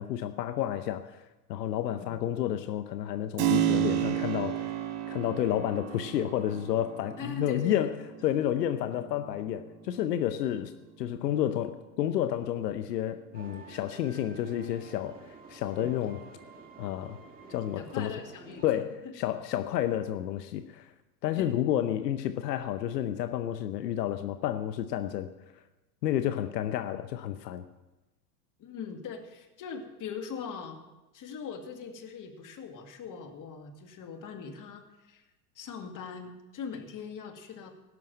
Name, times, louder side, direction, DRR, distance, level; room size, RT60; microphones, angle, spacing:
voice 1, 0.0-8.0 8.2-10.7 11.0-16.2 16.8-17.2 17.5-18.1 18.6-20.9 21.2-25.3 26.0-27.7, left 11 dB, 85° left, 10 dB, 0.9 m, -31 dB
Keyboard (musical), 3.4-11.9, right 11 dB, 60° right, 2.0 m, -33 dB
voice 2, 7.2-7.9 17.7-18.6 21.3-21.5 28.6-30.8 31.1-35.2 35.6-37.7, left 6 dB, 40° left, 5 dB, 2.3 m, -41 dB
sound 1, 13.3-18.7, right 4 dB, 20° right, 2.2 m, -49 dB
17.5 x 6.3 x 9.0 m, 1.0 s
hypercardioid pair, 100°, 48 cm